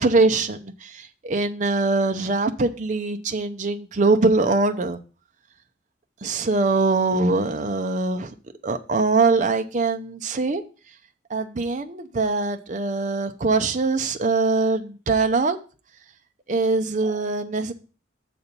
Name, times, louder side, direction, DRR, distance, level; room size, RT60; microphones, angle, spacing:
voice 1, 0.0-5.0 6.2-8.3 8.6-10.6 11.3-15.6 16.5-17.7, right 3 dB, 40° right, 0.5 m, -22 dB
6.8 x 4.2 x 6.7 m
head